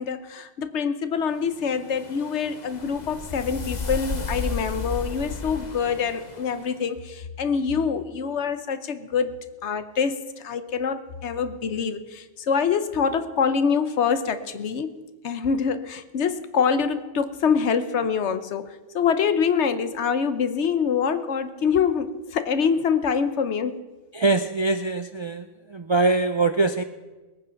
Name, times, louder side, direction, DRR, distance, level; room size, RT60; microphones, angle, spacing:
voice 1, 0.0-14.9 15.2-18.7 18.9-23.8, left 6 dB, 80° left, 12 dB, 1.2 m, -25 dB
sound 1, 1.4-6.7, left 3 dB, 40° left, 1.2 m, -33 dB
voice 2, 24.1-26.8, right 3 dB, 45° right, 9 dB, 0.3 m, -23 dB
20.5 x 9.0 x 5.7 m, 1.2 s
omnidirectional pair, 1.1 m